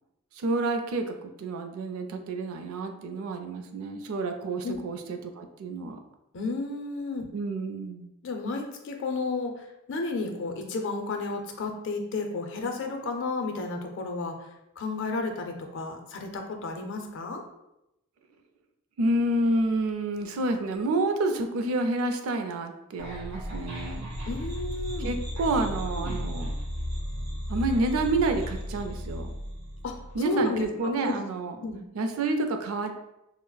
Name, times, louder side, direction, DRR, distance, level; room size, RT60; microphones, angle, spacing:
voice 1, 0.4-6.0 7.3-8.1 19.0-24.1 25.0-26.5 27.5-29.4 30.1-31.6 31.9-32.9, right 2 dB, 85° right, 6 dB, 0.4 m, -29 dB
voice 2, 6.3-7.3 8.2-14.5 14.8-17.4 24.3-25.1 26.0-26.2 29.8-29.9 30.2-31.1 31.6-31.8, left 3 dB, 60° left, 4 dB, 0.4 m, -32 dB
sound 1, 23.0-30.2, equal, 55° right, 1.3 m, -34 dB
3.9 x 2.0 x 2.2 m, 0.88 s
head